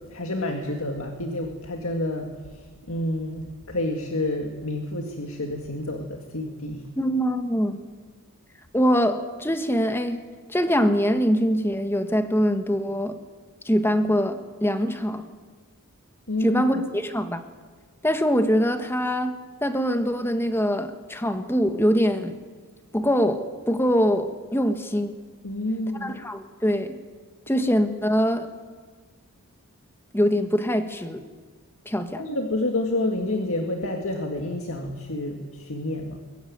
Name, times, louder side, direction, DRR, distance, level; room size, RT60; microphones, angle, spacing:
voice 1, 0.1-6.9 16.3-16.8 25.4-26.2 32.2-36.2, left 1 dB, 65° left, 3 dB, 2.0 m, -29 dB
voice 2, 7.0-7.8 8.7-10.2 10.5-13.2 13.6-15.3 16.4-17.4 18.0-22.4 22.9-25.1 26.0-27.0 27.5-28.5 30.1-31.2 31.8-32.2, equal, 10° left, 8 dB, 1.5 m, -23 dB
22.5 x 18.5 x 9.4 m, 1.5 s
head